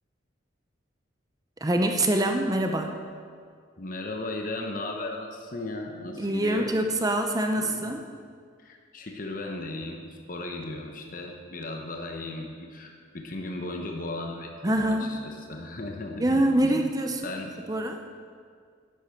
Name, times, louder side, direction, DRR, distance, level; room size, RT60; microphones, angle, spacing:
voice 1, 1.6-3.0 6.2-8.0 14.6-15.2 16.2-17.3 17.7-18.0, right 1 dB, 20° right, 5 dB, 0.5 m, -25 dB
voice 2, 3.8-6.7 7.6-8.0 8.6-16.9 17.2-17.6, left 2 dB, 40° left, 2 dB, 0.9 m, -36 dB
11.0 x 8.3 x 5.7 m, 2.1 s
head